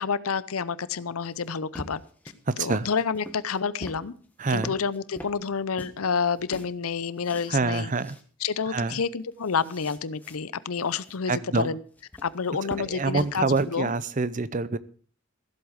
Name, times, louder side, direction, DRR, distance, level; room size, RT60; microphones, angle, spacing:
voice 1, 0.0-2.0 2.6-4.1 4.5-7.9 8.4-11.8 12.2-13.9, left 5 dB, 80° left, 18 dB, 0.7 m, -29 dB
sound 1, 1.0-6.0 6.3-7.6 7.9-8.2 8.6-8.7 9.1-10.4 10.7-11.2 11.9-14.1, equal, 10° left, 1.4 m, -44 dB
voice 2, 2.5-2.9 4.4-4.8 7.5-8.2 8.7-9.0 11.3-11.7 12.8-14.8, right 3 dB, 35° right, 17 dB, 0.6 m, -26 dB
15.0 x 8.1 x 6.5 m, 0.43 s
head